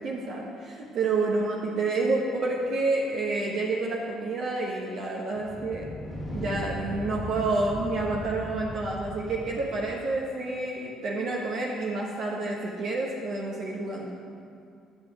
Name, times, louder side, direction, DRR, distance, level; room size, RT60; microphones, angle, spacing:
voice 1, 0.0-5.8 6.3-14.1, right 3 dB, 65° right, -2 dB, 1.0 m, -29 dB
sound 1, 5.3-10.2, left 1 dB, 25° left, 2.0 m, -38 dB
9.5 x 7.0 x 4.8 m, 2.3 s
supercardioid pair, 65°, 0 cm